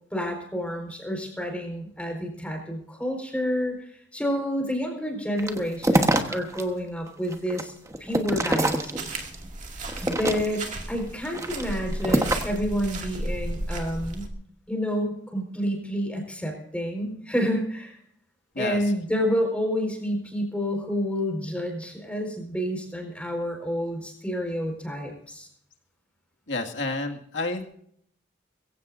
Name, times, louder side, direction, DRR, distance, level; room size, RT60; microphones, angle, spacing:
voice 1, 0.1-7.7 8.0-9.3 10.0-14.3 14.7-18.0 18.6-25.5, equal, 5° left, 1 dB, 4.5 m, -29 dB
sound 1, 5.4-6.6 7.1-9.4 9.9-10.7 11.3-12.6, right 1 dB, 15° right, 1.2 m, -25 dB
sound 2, 8.9-14.3, right 1 dB, 40° right, 2.2 m, -34 dB
voice 2, 26.5-27.7, left 2 dB, 75° left, 2 dB, 2.0 m, -30 dB
22.5 x 16.0 x 2.6 m, 0.66 s
head